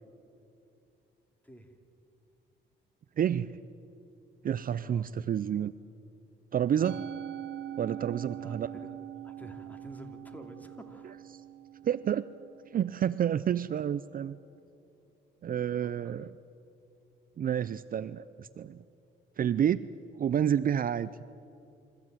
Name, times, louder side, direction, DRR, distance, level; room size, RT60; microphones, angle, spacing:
voice 1, 1.4-1.8 4.7-5.1 6.8-7.0 8.4-9.0 9.2-11.2 15.8-16.3, equal, 10° left, 5 dB, 2.8 m, -50 dB
voice 2, 3.2-3.6 4.4-5.7 6.5-7.0 7.8-8.7 11.8-12.2 12.7-14.4 15.4-16.3 17.4-18.8 19.4-19.9 20.2-21.1, right 9 dB, 45° right, 16 dB, 0.5 m, -29 dB
Musical instrument, 6.8-13.2, right 10 dB, 65° right, 0.9 m, -43 dB
27.5 x 14.5 x 9.1 m, 2.7 s
cardioid pair, 90°, 20 cm